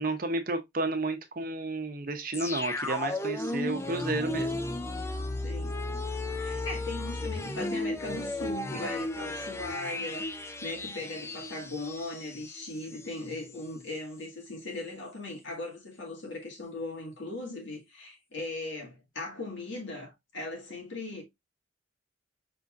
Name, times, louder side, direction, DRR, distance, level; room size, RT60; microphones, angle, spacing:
voice 1, 0.0-4.6 8.7-8.8, right 2 dB, 45° right, 0.8 m, -32 dB
sound 1, 2.3-13.1 13.5-13.6, left 2 dB, 15° left, 0.4 m, -34 dB
voice 2, 5.4-5.8 6.4-21.2, left 2 dB, 70° left, 1.9 m, -39 dB
5.5 x 4.1 x 2.4 m
head